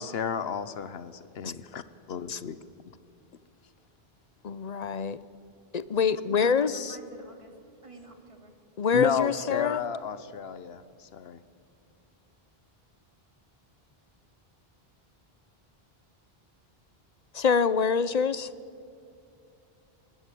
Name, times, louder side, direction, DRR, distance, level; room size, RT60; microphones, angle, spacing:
voice 1, 0.0-2.6 8.9-11.4, left 7 dB, 80° left, 14 dB, 1.0 m, -32 dB
voice 2, 4.4-5.2 5.7-7.0 8.8-9.8 17.3-18.5, left 6 dB, 45° left, 16 dB, 0.7 m, -25 dB
voice 3, 6.6-8.7, right 3 dB, 30° right, 4 dB, 2.5 m, -50 dB
21.0 x 20.0 x 8.4 m, 2.6 s
omnidirectional pair, 1.0 m